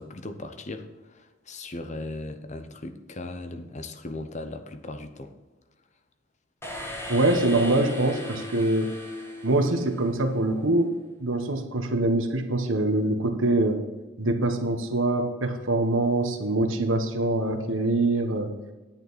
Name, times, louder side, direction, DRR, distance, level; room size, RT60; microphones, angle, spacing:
voice 1, 0.0-5.3, left 2 dB, 35° left, 0.9 m, -38 dB
sound 1, 6.6-10.5, left 1 dB, 15° left, 2.2 m, -37 dB
voice 2, 7.1-8.9 9.4-10.9 11.2-13.8 14.2-18.5, right 2 dB, 85° right, 1.4 m, -24 dB
10.0 x 9.1 x 4.2 m
head